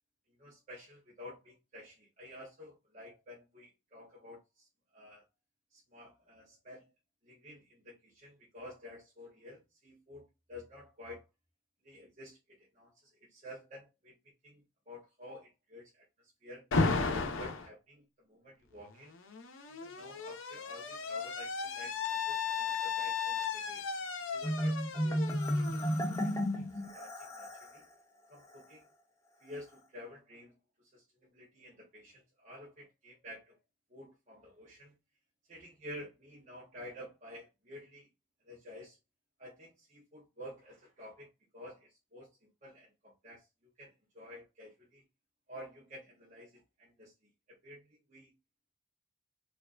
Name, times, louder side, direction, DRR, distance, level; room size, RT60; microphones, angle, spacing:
voice 1, 0.4-4.7 4.9-5.2 5.7-6.9 7.2-11.2 11.8-14.1 14.4-16.1 16.4-16.7 17.0-19.1 19.7-23.8 24.3-26.7 26.9-27.8 28.3-28.9 29.4-33.6 33.9-34.9 35.5-38.1 38.4-39.0 39.4-41.3 41.5-43.5 43.8-45.0 45.5-47.1 47.6-48.3, left 1 dB, 35° right, 1.0 m, -51 dB
Alarm, 16.7-17.7 18.9-26.6, left 5 dB, 70° left, 0.6 m, -35 dB
Marimba xylophone, 24.4-27.8, equal, 15° left, 0.5 m, -33 dB
4.4 x 2.6 x 2.5 m
head